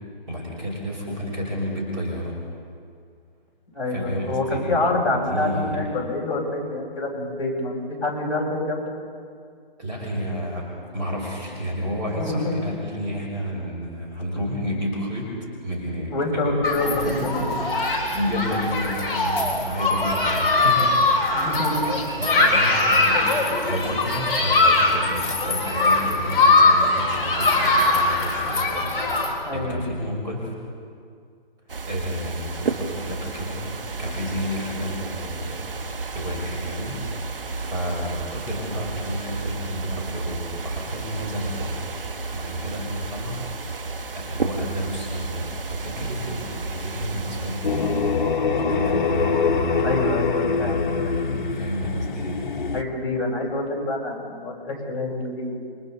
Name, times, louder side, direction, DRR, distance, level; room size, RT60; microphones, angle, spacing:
voice 1, 0.3-2.4 3.9-4.8 5.3-5.8 9.8-10.7 10.9-15.3 15.6-16.5 16.8-20.9 22.2-29.0 29.5-30.5 31.9-33.6 34.0-35.7 36.1-37.0 37.6-41.8 42.3-43.4 44.1-48.1 48.4-50.2 51.5-52.4, equal, 10° right, -7 dB, 4.3 m, -31 dB
voice 2, 3.7-8.9 12.1-12.5 16.1-17.5 21.3-21.9 29.4-30.0 49.8-51.3 52.7-55.5, left 2 dB, 35° left, -3 dB, 7.2 m, -27 dB
Human group actions, 16.6-29.3, left 2 dB, 15° left, 3.8 m, -21 dB
sound 1, 31.7-48.5, right 3 dB, 65° right, 1.9 m, -32 dB
sound 2, 47.6-52.8, left 4 dB, 55° left, 1.4 m, -24 dB
29.5 x 24.0 x 4.1 m, 2.2 s
hypercardioid pair, 165°, 30 cm